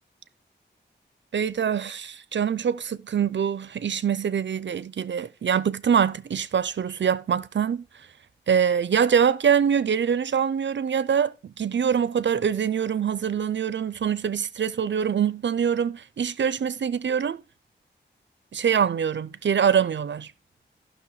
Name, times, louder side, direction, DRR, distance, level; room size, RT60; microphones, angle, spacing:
voice 1, 1.3-8.1 8.5-17.4 18.5-20.3, right 7 dB, 70° right, 0.5 m, -24 dB
15.0 x 6.2 x 3.1 m
wide cardioid pair, 60°, 20 cm